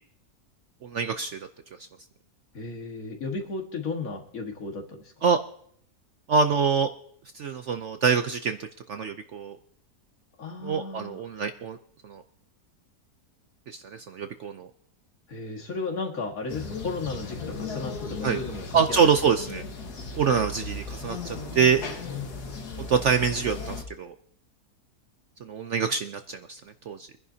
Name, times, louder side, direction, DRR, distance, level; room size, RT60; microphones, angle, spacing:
voice 1, 0.8-1.5 5.2-5.4 6.3-6.9 7.3-8.6 8.9-9.6 10.6-11.8 12.0-12.2 13.7-14.7 18.2-18.4 18.7-19.6 20.2-21.8 22.9-24.1 25.4-26.6 26.9-27.1, right 6 dB, 60° right, 8 dB, 0.8 m, -25 dB
voice 2, 2.5-5.1 10.4-11.2 15.3-19.1 22.0-22.7, left 3 dB, 60° left, 2 dB, 2.1 m, -35 dB
sound 1, 16.5-23.8, left 4 dB, 75° left, 2.1 m, -36 dB
24.5 x 10.5 x 2.8 m, 0.64 s
omnidirectional pair, 1.7 m